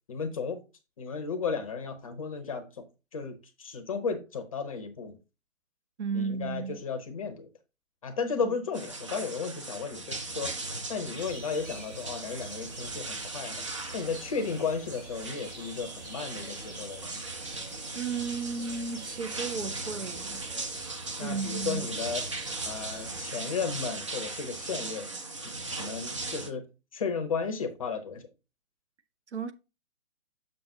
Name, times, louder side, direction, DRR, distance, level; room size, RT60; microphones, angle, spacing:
voice 1, 0.1-0.6 1.0-2.8 3.1-5.2 6.1-7.5 8.0-10.5 10.9-13.6 13.9-17.2 21.2-22.2 22.6-25.1 25.8-26.7 26.9-28.3, left 5 dB, 25° left, 0.8 m, -34 dB
voice 2, 6.0-6.8 8.4-8.6 17.9-20.4 21.2-21.9 29.3-29.5, right 5 dB, 55° right, 0.9 m, -34 dB
sound 1, 8.7-26.5, right 3 dB, 25° right, 0.5 m, -38 dB
sound 2, 11.1-23.2, right 2 dB, 80° right, 3.7 m, -47 dB
6.8 x 6.6 x 2.7 m
figure-of-eight pair, 135°, 42 cm